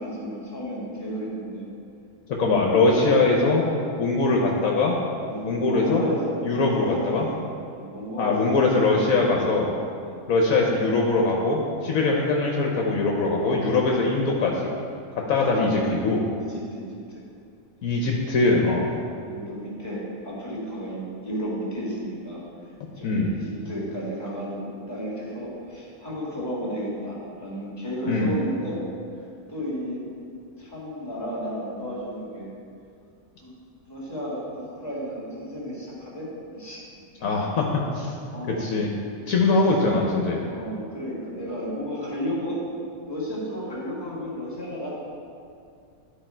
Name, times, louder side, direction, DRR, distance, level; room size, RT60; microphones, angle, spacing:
voice 1, 0.0-1.7 5.3-7.2 7.7-8.7 10.0-10.3 12.0-12.2 13.4-14.1 15.6-16.1 16.4-17.2 19.0-22.4 23.0-28.8 29.5-30.0 30.6-32.5 33.4-33.5 33.9-37.5 38.3-38.8 39.6-39.7 40.4-44.9, equal, 15° left, -6 dB, 2.0 m, -33 dB
voice 2, 2.4-3.7 4.0-5.0 5.4-6.0 6.4-7.3 8.2-9.7 10.3-14.8 15.2-16.2 17.8-18.9 23.0-23.4 28.1-28.3 37.2-37.6 37.9-38.1 38.5-38.9 39.3-40.4, left 3 dB, 70° left, -1 dB, 1.2 m, -22 dB
11.5 x 4.5 x 4.4 m, 2.4 s
omnidirectional pair, 1.6 m